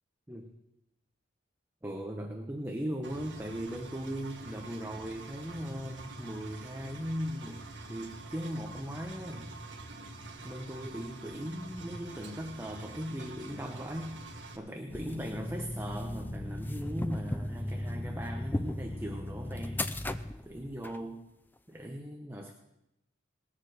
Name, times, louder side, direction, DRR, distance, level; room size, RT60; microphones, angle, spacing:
voice 1, 1.8-9.5 10.4-14.2 14.6-21.3 21.7-22.5, equal, 10° right, 2 dB, 1.0 m, -39 dB
Engine, 3.0-14.6, right 2 dB, 65° right, 1.7 m, -46 dB
sound 1, 14.9-21.0, left 1 dB, 10° left, 0.5 m, -36 dB
19.5 x 7.4 x 6.4 m, 0.87 s
head